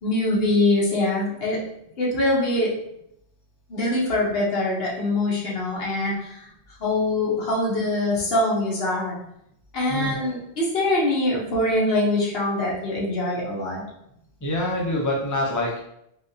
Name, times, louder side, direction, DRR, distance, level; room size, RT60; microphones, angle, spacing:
voice 1, 0.0-1.6 2.0-2.8 3.7-6.5 6.8-9.2 9.7-13.8, left 2 dB, 70° left, -5 dB, 1.1 m, -23 dB
voice 2, 9.9-10.3 14.4-15.8, left 1 dB, 25° left, -2 dB, 0.5 m, -26 dB
3.3 x 2.4 x 2.6 m, 0.77 s
omnidirectional pair, 1.1 m